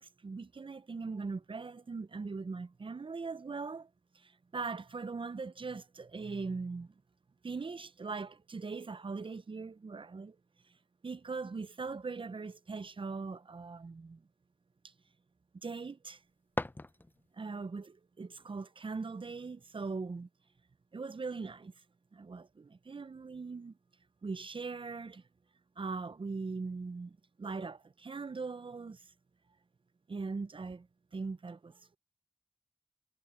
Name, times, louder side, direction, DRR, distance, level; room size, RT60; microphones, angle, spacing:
voice 1, 0.0-3.9 4.2-6.9 7.4-10.4 11.0-14.2 15.6-16.2 17.4-20.3 20.9-21.7 22.1-23.7 24.2-25.2 25.8-29.0 30.1-30.9 31.1-32.0, right 4 dB, 40° right, 0.5 m, -40 dB
sound 1, 16.0-17.5, left 2 dB, 15° left, 0.4 m, -40 dB
wide cardioid pair, 85°, 13 cm